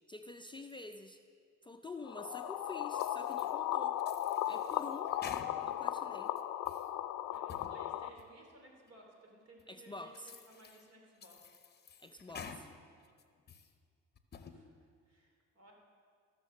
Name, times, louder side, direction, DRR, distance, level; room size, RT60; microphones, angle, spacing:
voice 1, 0.1-1.2 1.6-4.0 4.5-5.1 5.6-6.3 9.7-10.3 12.0-12.7, left 3 dB, 15° left, 6 dB, 0.4 m, -48 dB
sound 1, 2.0-8.1, left 12 dB, 80° left, 0.5 m, -36 dB
sound 2, 2.9-3.5 4.0-5.9 6.3-6.9 7.3-7.8 8.2-8.3 8.9-9.0 9.6-9.7 10.1-10.8 11.2-12.6 13.0-13.7 14.2-14.6, left 6 dB, 35° left, 0.8 m, -50 dB
voice 2, 7.3-11.4 14.5-15.7, right 2 dB, 55° right, 0 dB, 2.9 m, -59 dB
14.5 x 6.6 x 6.4 m, 2.2 s
cardioid pair, 90°, 30 cm